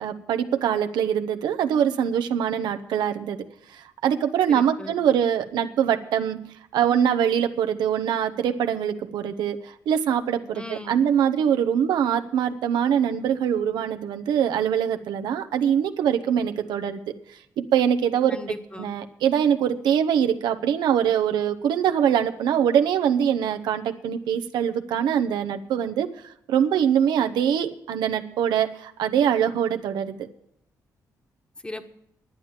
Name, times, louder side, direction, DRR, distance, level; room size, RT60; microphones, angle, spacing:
voice 1, 0.0-3.4 3.7-6.4 6.7-17.1 17.6-18.4 18.8-30.2, right 9 dB, 90° right, 7 dB, 0.9 m, -23 dB
voice 2, 4.5-4.9 10.5-11.0 18.3-18.9 31.6-31.8, left 2 dB, 15° left, 8 dB, 1.4 m, -37 dB
11.0 x 8.8 x 7.4 m, 0.74 s
cardioid pair, 75°, 7 cm